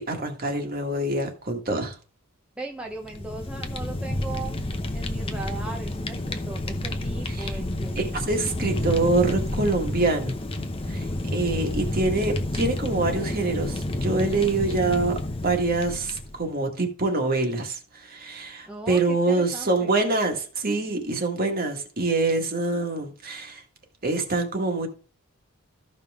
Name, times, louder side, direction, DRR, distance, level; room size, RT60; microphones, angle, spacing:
voice 1, 0.0-1.9 7.4-7.5 7.9-10.3 10.9-15.2 15.4-23.6 24.0-24.9, right 3 dB, 45° right, 1.7 m, -25 dB
voice 2, 2.6-4.6 4.9-8.1 18.7-20.0, right 3 dB, 5° right, 0.9 m, -38 dB
Fire, 2.9-16.5, left 1 dB, 25° left, 0.8 m, -30 dB
13.5 x 5.4 x 3.6 m
head